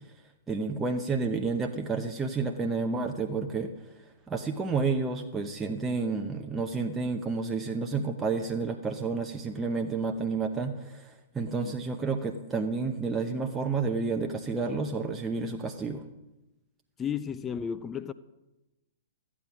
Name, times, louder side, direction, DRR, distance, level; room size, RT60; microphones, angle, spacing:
voice 1, 0.5-3.7 4.3-16.0, right 4 dB, 15° right, 0.8 m, -30 dB
voice 2, 11.4-11.7 17.0-18.1, left 7 dB, 20° left, 0.5 m, -34 dB
14.0 x 8.6 x 6.1 m
figure-of-eight pair, 110°, 0 cm